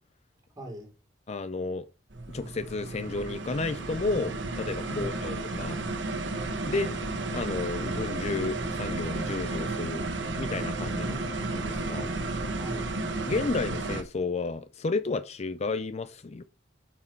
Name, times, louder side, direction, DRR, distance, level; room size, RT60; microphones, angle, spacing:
voice 1, 0.6-0.9 4.9-5.3 6.7-6.9 11.0-11.7 12.6-12.9, equal, 20° right, 3.8 m, -42 dB
voice 2, 1.3-1.9 2.3-5.8 6.7-6.9 7.3-10.0 10.3-11.2 11.5-12.1 13.3-16.4, left 3 dB, 35° left, 0.5 m, -32 dB
sound 1, 2.1-14.0, right 2 dB, 85° right, 1.4 m, -33 dB
Bowed string instrument, 3.2-10.0, right 5 dB, 70° right, 1.4 m, -48 dB
7.3 x 6.1 x 4.5 m
head